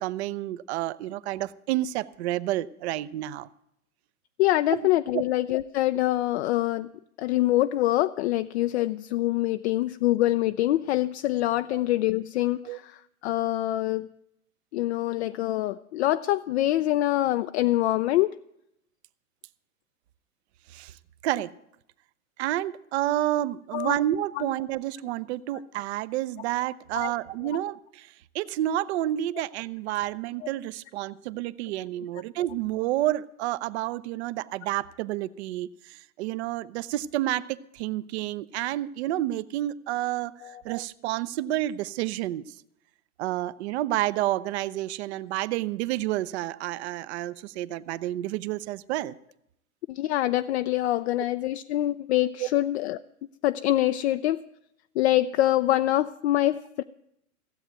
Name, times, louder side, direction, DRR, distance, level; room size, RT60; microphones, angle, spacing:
voice 1, 0.0-3.5 4.7-4.9 5.1-5.2 11.7-11.8 12.7-12.8 20.7-21.0 21.2-21.5 22.4-42.5 43.2-49.1 52.4-52.5, right 14 dB, 45° right, 17 dB, 0.7 m, -30 dB
voice 2, 4.4-6.9 7.2-14.1 14.7-18.4 23.7-24.0 24.4-24.5 26.9-27.1 40.4-40.6 49.9-53.0 53.4-54.4 55.0-56.8, left 15 dB, 50° left, 10 dB, 0.6 m, -25 dB
16.0 x 8.0 x 8.9 m, 0.79 s
hypercardioid pair, 115°, 44 cm